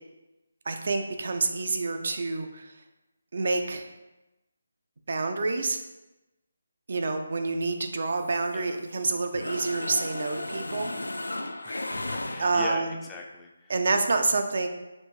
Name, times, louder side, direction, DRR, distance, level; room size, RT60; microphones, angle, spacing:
voice 1, 0.7-2.7 3.3-3.9 5.1-5.8 6.9-10.9 12.4-12.9 13.7-14.7, right 3 dB, 60° right, 6 dB, 0.4 m, -28 dB
Mechanisms, 8.1-9.0 9.3-12.9, left 2 dB, 85° left, 0.3 m, -35 dB
voice 2, 11.6-13.7, left 4 dB, 10° left, 0 dB, 0.4 m, -41 dB
5.2 x 2.6 x 3.1 m, 1.0 s
figure-of-eight pair, 155°, 0 cm